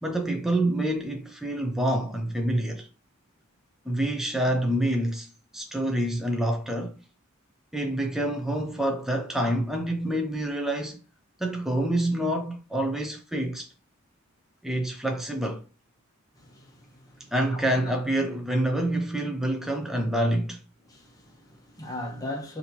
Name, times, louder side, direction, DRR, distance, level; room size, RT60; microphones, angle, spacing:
voice 1, 0.0-2.9 3.9-6.9 7.7-11.0 11.4-13.7 14.6-15.6 17.3-20.6, right 1 dB, ahead, 0.4 m, -27 dB
voice 2, 16.4-17.9 20.9-22.6, left 1 dB, 15° left, 0.8 m, -39 dB
4.2 x 2.7 x 2.8 m
head